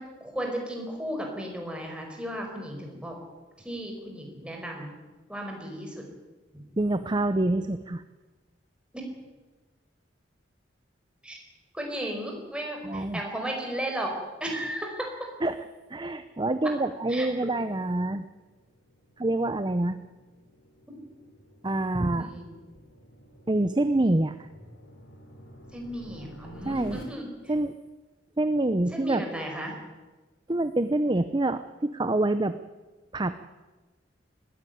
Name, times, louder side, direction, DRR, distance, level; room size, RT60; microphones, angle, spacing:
voice 1, 0.0-3.2 3.6-4.9 5.3-6.0 6.5-6.6 8.9-9.0 11.2-11.4 11.7-14.1 14.4-15.3 17.1-17.3 22.1-22.6 25.7-27.5 28.9-29.7, right 1 dB, 5° right, 1 dB, 4.9 m, -35 dB
voice 2, 6.8-8.0 12.8-13.2 15.4-15.6 15.9-18.3 19.2-20.0 21.6-22.3 23.5-24.5 26.6-27.0 27.5-27.8 28.4-29.2 30.5-32.6 33.1-33.4, right 2 dB, 25° right, 11 dB, 0.7 m, -26 dB
sound 1, 17.0-27.0, equal, 90° left, 5.0 m, -51 dB
20.5 x 15.5 x 9.4 m, 1.2 s
head